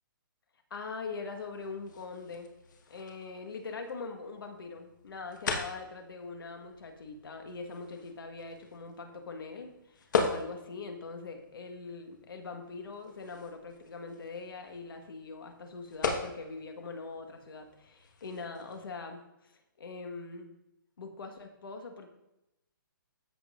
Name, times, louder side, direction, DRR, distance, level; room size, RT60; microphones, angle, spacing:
voice 1, 0.7-2.5 2.9-19.5 19.8-20.5 21.0-22.1, left 4 dB, 75° left, 5 dB, 1.5 m, -42 dB
sound 1, 1.2-18.9, left 5 dB, 55° left, 1.4 m, -40 dB
14.0 x 5.3 x 2.5 m, 0.90 s
hypercardioid pair, 170°, 12 cm